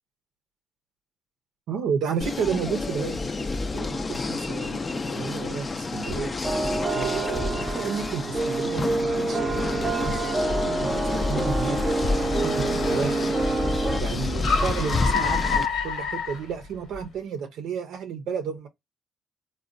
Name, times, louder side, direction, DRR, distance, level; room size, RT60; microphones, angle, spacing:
voice 1, 1.7-6.4 6.9-18.7, right 7 dB, 80° right, 0.5 m, -32 dB
sound 1, 2.2-15.7, left 3 dB, 30° left, 0.4 m, -29 dB
sound 2, 6.4-14.0, right 3 dB, 25° right, 0.5 m, -27 dB
Car, 7.2-17.0, left 5 dB, 75° left, 1.1 m, -31 dB
3.7 x 2.1 x 2.4 m
cardioid pair, 90°, 0 cm